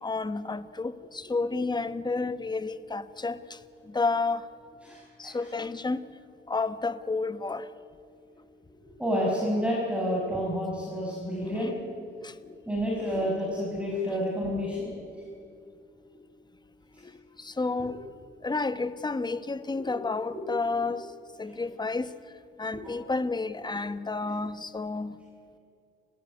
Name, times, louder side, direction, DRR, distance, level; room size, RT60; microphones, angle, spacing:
voice 1, 0.0-3.6 3.9-4.5 5.2-6.0 6.5-7.7 11.5-11.7 12.2-12.5 17.0-17.1 17.4-18.0 18.4-21.1 21.4-22.1 22.6-25.2, left 3 dB, 20° left, 1.2 m, -31 dB
voice 2, 4.8-5.5 8.9-11.7 12.6-14.9 16.9-17.0 19.7-20.0 20.3-20.4 22.8-23.0, equal, 5° right, 6.0 m, -30 dB
29.5 x 15.0 x 9.5 m
cardioid pair, 90°, 20 cm